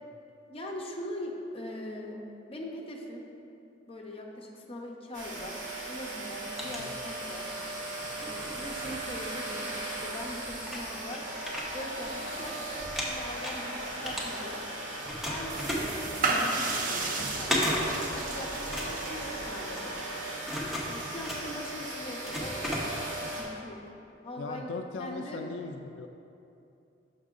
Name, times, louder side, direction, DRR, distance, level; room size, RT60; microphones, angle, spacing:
voice 1, 0.5-2.2 2.5-3.3 3.9-7.5 8.1-11.3 11.7-14.6 15.3-20.0 20.9-22.9 23.2-23.8 24.2-24.7 25.0-25.5, left 1 dB, 30° left, 0 dB, 0.7 m, -41 dB
sound 1, 5.1-23.4, right 2 dB, 80° right, 1.4 m, -38 dB
sound 2, 6.2-7.5 8.0-9.6 10.2-10.3 10.6-12.5 12.8-14.7 15.0-23.3, equal, ahead, 0.8 m, -35 dB
sound 3, 15.5-22.2, right 3 dB, 50° right, 0.7 m, -35 dB
voice 2, 24.4-26.1, left 4 dB, 75° left, 5 dB, 0.3 m, -39 dB
6.1 x 5.9 x 3.8 m, 2.7 s
head